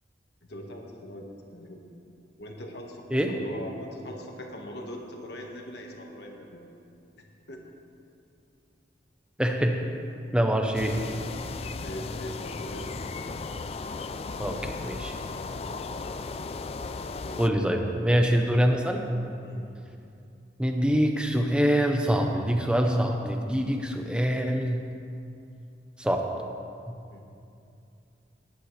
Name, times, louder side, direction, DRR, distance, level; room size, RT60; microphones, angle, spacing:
voice 1, 0.4-1.8 2.4-6.6 7.2-7.6 10.2-10.5 11.8-13.1 17.1-18.0 19.4-19.7 27.1-27.2, left 1 dB, 65° left, 1 dB, 1.5 m, -41 dB
voice 2, 9.4-9.8 10.3-11.0 14.4-15.1 17.4-19.0 20.6-24.8 26.0-26.3, equal, 5° right, 3 dB, 0.8 m, -24 dB
sound 1, 10.7-17.5, left 3 dB, 35° left, 0.3 m, -36 dB
18.0 x 11.0 x 3.3 m, 2.6 s
head